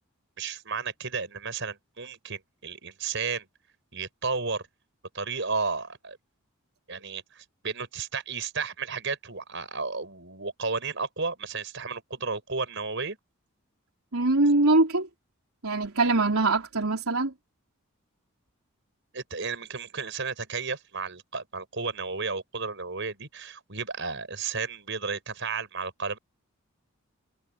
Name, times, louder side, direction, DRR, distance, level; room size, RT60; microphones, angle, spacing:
voice 1, 0.4-3.5 3.9-4.6 5.1-6.2 6.9-13.2 19.1-26.2, right 4 dB, 55° right, 6.3 m, -33 dB
voice 2, 14.1-15.1 15.6-17.3, right 2 dB, 75° right, 3.9 m, -23 dB
head